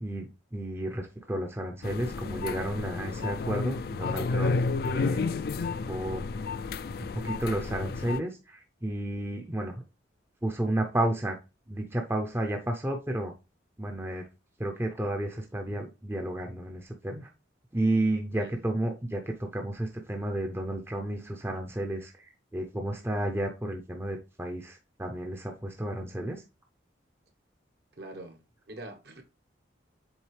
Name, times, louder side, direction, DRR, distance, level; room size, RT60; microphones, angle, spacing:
voice 1, 0.0-5.3 5.6-6.2 7.0-9.7 10.4-11.4 11.7-13.3 13.8-14.2 14.6-17.3 17.7-22.2 22.5-26.4, right 1 dB, 10° right, 0.6 m, -32 dB
sound 1, 1.8-8.2, left 4 dB, 50° left, 0.3 m, -31 dB
voice 2, 18.3-18.7 27.9-28.4 28.7-29.2, right 1 dB, 55° right, 1.0 m, -44 dB
7.2 x 4.0 x 3.2 m
head